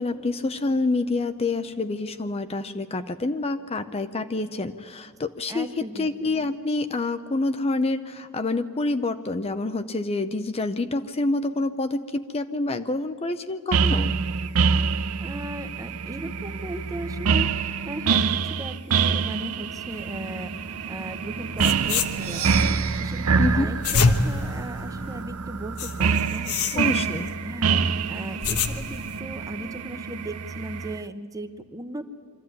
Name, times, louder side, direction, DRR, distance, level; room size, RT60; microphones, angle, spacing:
voice 1, 0.0-14.2 23.4-23.7 26.8-27.3, left 2 dB, 25° left, 10 dB, 0.6 m, -27 dB
voice 2, 5.5-6.5 15.2-26.9 27.4-32.0, right 1 dB, 15° right, 9 dB, 0.9 m, -37 dB
sound 1, 13.7-31.0, right 5 dB, 80° right, 0.7 m, -26 dB
sound 2, 21.3-21.4 21.6-22.6 23.6-25.2 25.8-27.3 28.1-29.2, left 4 dB, 80° left, 1.2 m, -26 dB
Percussion, 22.1-25.9, right 8 dB, 65° right, 1.9 m, -37 dB
24.0 x 14.0 x 9.3 m, 2.4 s
head